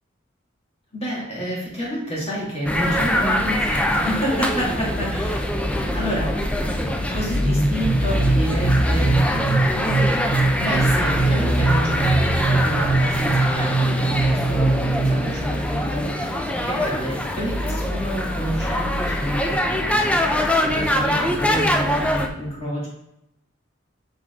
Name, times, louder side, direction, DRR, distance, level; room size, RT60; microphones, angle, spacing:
voice 1, 0.9-6.3 7.1-9.2 10.6-22.9, equal, 30° left, -6 dB, 2.7 m, -29 dB
sound 1, 2.7-22.3, left 1 dB, 5° left, 0.5 m, -23 dB
sound 2, 7.9-15.4, right 3 dB, 90° right, 1.0 m, -22 dB
7.3 x 4.7 x 3.9 m, 0.82 s
head